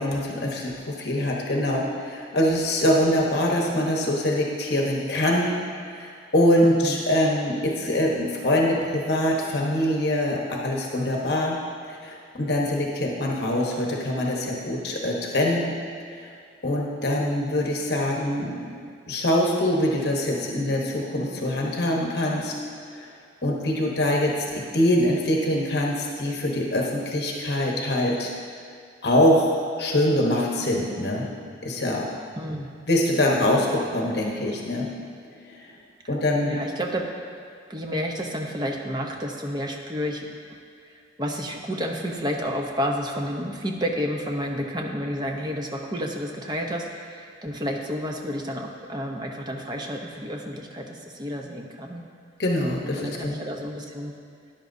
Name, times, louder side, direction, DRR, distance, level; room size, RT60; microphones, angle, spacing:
voice 1, 0.0-5.5 5.9-11.6 11.8-15.7 16.1-16.2 16.6-18.5 19.1-22.5 22.9-23.1 23.4-28.3 29.0-29.5 29.8-31.3 31.6-32.1 32.9-34.9 35.4-35.7 36.1-36.6 52.4-53.4, left 1 dB, 55° left, -1 dB, 1.1 m, -24 dB
voice 2, 6.6-7.0 32.4-32.7 36.0-36.2 36.4-37.0 37.7-40.3 40.8-52.0 53.0-54.1, equal, 20° right, 1 dB, 0.8 m, -30 dB
13.5 x 10.0 x 2.7 m, 2.3 s
head